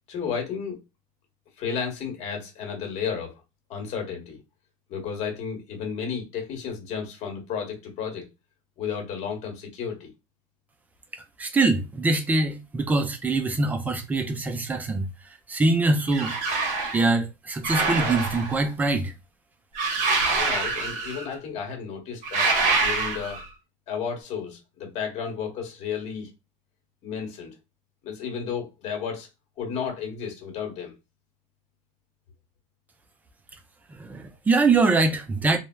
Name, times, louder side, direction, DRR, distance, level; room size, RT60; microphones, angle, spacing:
voice 1, 0.1-0.8 1.6-3.3 3.7-4.4 4.9-8.3 8.8-10.1 20.3-23.4 23.9-26.3 27.0-27.6 28.0-29.3 29.6-30.9, left 6 dB, 40° left, 1.1 m, -32 dB
voice 2, 11.1-15.1 15.5-16.3 16.9-19.1 33.9-35.6, right 3 dB, 10° right, 0.4 m, -23 dB
sound 1, 16.1-17.0 17.6-18.7 19.7-21.3 22.2-23.5, right 3 dB, 45° right, 0.8 m, -25 dB
3.2 x 2.0 x 2.2 m
supercardioid pair, 145°, 17 cm